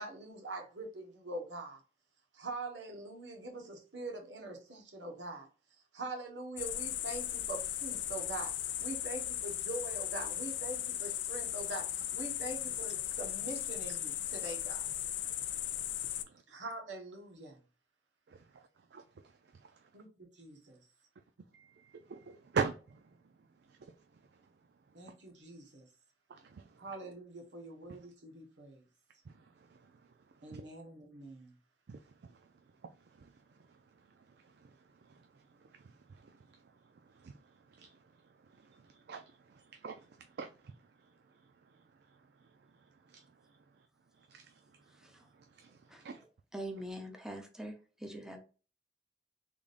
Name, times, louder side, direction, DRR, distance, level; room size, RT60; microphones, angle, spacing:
voice 1, 0.0-1.8 2.3-5.5 5.9-14.8 16.5-17.6 19.9-20.1 20.3-20.8 24.9-25.9 26.8-28.8 30.4-31.5, right 2 dB, 90° right, 1.3 m, -44 dB
sound 1, 6.6-16.2, left 12 dB, 90° left, 0.4 m, -37 dB
voice 2, 18.3-19.8 21.5-23.0 23.7-24.2 26.3-26.8 27.9-28.0 29.3-30.0 30.4-30.6 31.9-32.5 33.1-34.0 34.3-36.6 36.9-38.0 38.4-40.7 41.0-43.6 44.3-45.0 45.3-46.2, right 5 dB, 65° right, 0.4 m, -45 dB
voice 3, 46.5-47.7 48.0-48.4, right 1 dB, 5° right, 0.7 m, -43 dB
3.7 x 3.5 x 2.5 m
head